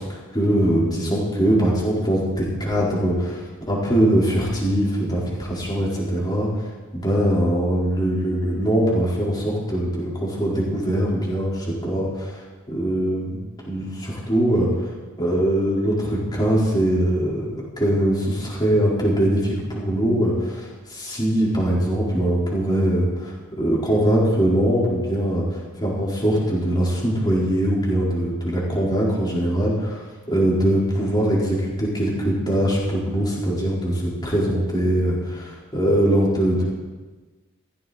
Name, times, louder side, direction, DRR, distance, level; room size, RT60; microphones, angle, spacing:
voice 1, 0.0-13.4 13.7-14.9 15.2-17.5 17.8-36.6, right 1 dB, 20° left, -5 dB, 4.4 m, -22 dB
15.5 x 15.0 x 4.3 m, 1.3 s
head